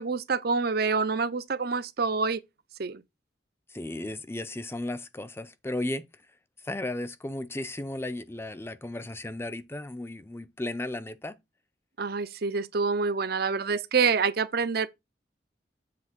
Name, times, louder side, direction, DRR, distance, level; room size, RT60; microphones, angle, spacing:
voice 1, 0.0-2.4 2.8-3.0 12.0-14.9, right 5 dB, 60° right, 0.6 m, -27 dB
voice 2, 3.7-6.1 6.6-11.4, left 1 dB, 15° left, 0.6 m, -35 dB
7.7 x 3.4 x 6.1 m
head